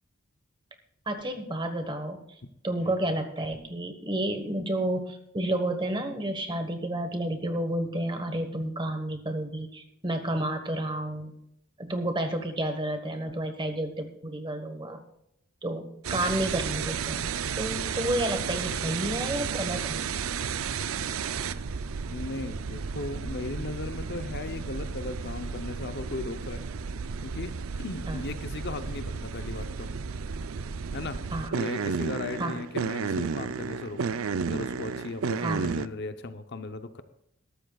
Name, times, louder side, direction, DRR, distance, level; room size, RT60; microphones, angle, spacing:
voice 1, 1.1-2.2 2.6-11.3 11.8-15.0 15.6-17.2 17.6-20.0 28.1-28.2 31.3-31.5 32.4-32.6 35.4-35.6, right 1 dB, 20° right, 6 dB, 1.3 m, -30 dB
sound 1, 16.0-35.9, right 6 dB, 75° right, 0.5 m, -33 dB
voice 2, 22.1-26.7 27.2-29.9 30.9-31.2 31.5-37.0, left 3 dB, 50° left, 9 dB, 0.7 m, -37 dB
20.5 x 13.0 x 2.4 m, 0.76 s
head